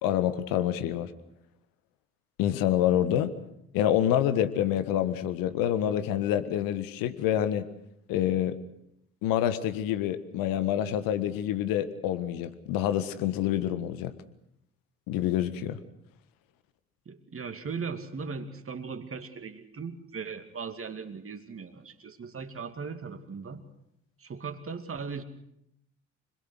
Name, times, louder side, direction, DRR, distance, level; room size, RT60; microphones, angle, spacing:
voice 1, 0.0-1.1 2.4-3.3 3.7-7.7 8.1-8.6 9.2-14.1 15.1-15.8, left 11 dB, 65° left, 11 dB, 1.7 m, -27 dB
voice 2, 17.1-23.6 24.2-25.2, right 5 dB, 35° right, 7 dB, 2.5 m, -38 dB
26.0 x 21.0 x 6.4 m, 0.79 s
figure-of-eight pair, 45°, 37 cm